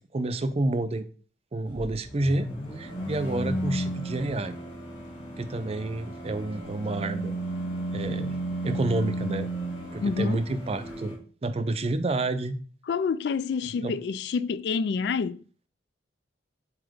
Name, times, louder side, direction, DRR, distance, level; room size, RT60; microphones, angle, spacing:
voice 1, 0.1-1.1 1.5-2.5 2.8-4.6 5.4-7.4 7.9-8.4 8.6-9.5 9.9-11.1 11.4-12.6 13.8-13.9, right 2 dB, 35° right, 0.5 m, -29 dB
sound 1, 1.6-11.1, right 1 dB, 30° left, 2.3 m, -34 dB
voice 2, 10.0-10.4 12.9-15.4, left 5 dB, 65° left, 0.3 m, -28 dB
7.4 x 2.9 x 5.0 m
head